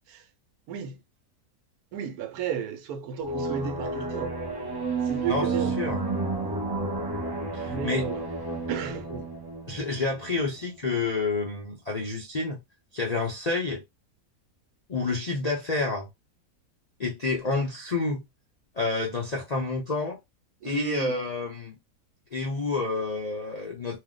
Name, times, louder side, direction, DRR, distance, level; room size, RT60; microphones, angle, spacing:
voice 1, 0.7-1.0 1.9-4.4 5.0-5.8 7.6-8.3 8.7-9.3 20.6-21.2, right 7 dB, 80° right, 1.1 m, -33 dB
sound 1, 3.2-10.6, right 3 dB, 25° right, 0.5 m, -31 dB
voice 2, 5.2-6.0 7.5-8.0 9.7-12.6 12.9-13.8 14.9-16.1 17.0-18.2 18.8-20.2 20.6-21.8 22.3-24.0, left 3 dB, 55° left, 0.4 m, -29 dB
2.7 x 2.1 x 3.6 m
omnidirectional pair, 1.6 m